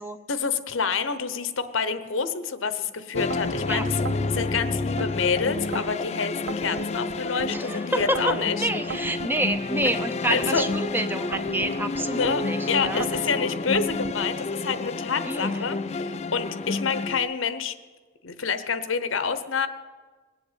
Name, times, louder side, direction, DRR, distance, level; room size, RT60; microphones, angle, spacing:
voice 1, 0.3-8.7 10.3-10.6 12.1-12.4 12.7-17.7 18.2-19.7, left 5 dB, 70° left, 12 dB, 1.0 m, -28 dB
sound 1, 3.1-17.2, left 3 dB, 35° left, 0.5 m, -30 dB
sound 2, 3.1-3.6 4.1-5.1 5.6-6.0 6.5-7.5 8.0-8.4 8.9-10.0 10.4-10.8 11.3-12.4 12.8-13.3 13.8-14.2, right 5 dB, 75° right, 0.8 m, -37 dB
voice 2, 7.5-13.5 15.2-15.6, right 1 dB, 10° right, 8 dB, 0.7 m, -29 dB
20.0 x 7.9 x 8.2 m, 1.4 s
head